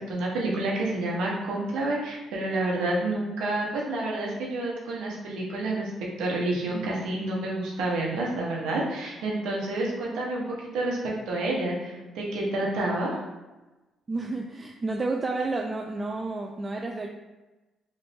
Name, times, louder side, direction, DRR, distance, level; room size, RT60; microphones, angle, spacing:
voice 1, 0.1-5.9 6.2-13.2, right 2 dB, 90° right, -3 dB, 0.9 m, -29 dB
voice 2, 14.1-17.1, right 3 dB, 30° right, 0 dB, 0.3 m, -30 dB
3.1 x 2.6 x 3.3 m, 1.1 s
cardioid pair, 90°, 0 cm